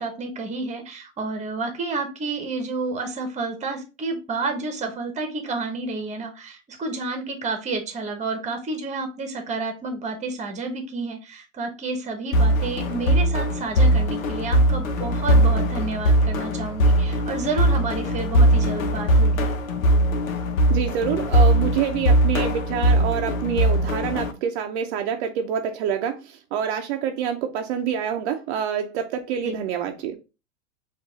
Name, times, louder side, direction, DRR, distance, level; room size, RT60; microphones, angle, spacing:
voice 1, 0.0-19.5 29.4-29.5, right 3 dB, 15° right, 6 dB, 1.0 m, -30 dB
sound 1, 12.3-24.3, right 1 dB, 85° left, 1.0 m, -20 dB
voice 2, 20.7-30.2, right 8 dB, 55° right, 4 dB, 0.7 m, -27 dB
4.6 x 2.6 x 3.8 m, 0.29 s
hypercardioid pair, 125°, 40 cm